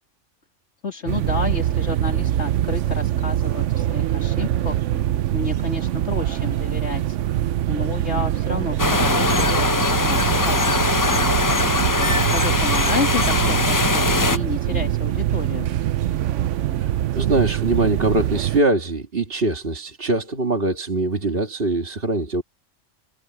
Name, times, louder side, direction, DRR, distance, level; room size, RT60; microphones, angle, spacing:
voice 1, 0.8-11.2 12.0-15.7, left 4 dB, 65° left, 3.2 m, -31 dB
sound 1, 1.1-18.6, right 12 dB, 75° right, 1.0 m, -23 dB
sound 2, 8.8-14.4, left 3 dB, 20° left, 0.6 m, -21 dB
voice 2, 16.8-22.4, right 2 dB, 50° right, 2.4 m, -23 dB
omnidirectional pair, 1.3 m